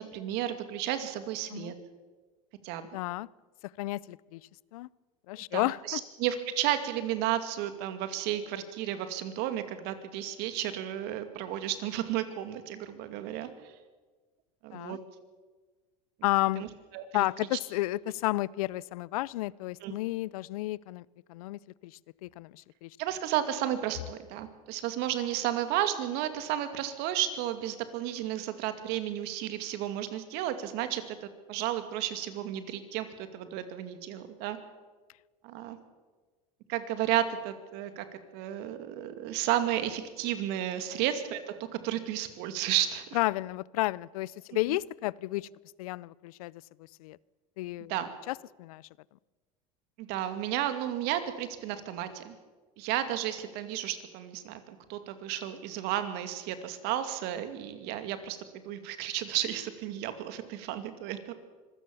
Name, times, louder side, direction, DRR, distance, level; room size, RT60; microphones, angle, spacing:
voice 1, 0.0-1.7 2.6-2.9 5.5-13.5 14.6-15.0 16.6-16.7 16.9-17.2 19.8-20.0 23.0-34.6 35.4-35.8 36.7-38.1 38.3-41.4 41.8-43.0 44.7-44.8 47.9-48.1 50.0-52.3 52.8-61.4, right 12 dB, 65° right, 9 dB, 2.5 m, -33 dB
voice 2, 2.9-3.3 3.8-4.4 4.7-4.9 5.3-6.0 14.7-15.0 16.2-16.7 17.1-21.9 22.2-22.9 40.9-41.0 43.1-45.5 45.8-46.5 47.0-47.2 47.6-47.9 48.3-48.8, left 18 dB, 80° left, 23 dB, 0.5 m, -32 dB
25.0 x 16.5 x 7.1 m, 1.4 s
hypercardioid pair, 95°, 18 cm